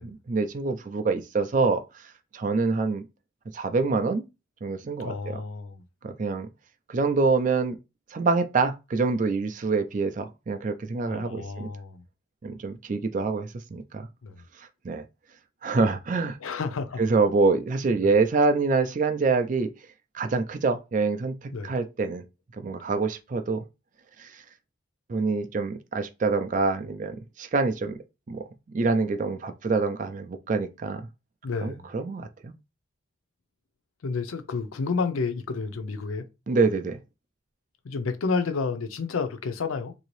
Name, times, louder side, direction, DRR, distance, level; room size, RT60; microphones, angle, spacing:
voice 1, 0.0-2.0 2.3-3.0 3.5-4.2 4.6-5.4 6.0-6.5 6.9-7.8 8.1-11.7 12.4-14.1 14.6-15.0 15.6-16.4 17.0-19.7 20.1-22.2 22.6-23.6 24.2-24.4 25.1-28.0 28.3-31.1 31.6-32.5 36.5-37.0, right 4 dB, 40° right, 0.4 m, -26 dB
voice 2, 5.0-5.8 11.1-12.0 14.2-14.4 16.4-17.0 18.0-18.1 21.5-21.7 31.4-31.9 34.0-36.3 37.8-39.9, left 4 dB, 85° left, 0.5 m, -30 dB
2.9 x 2.7 x 3.0 m
head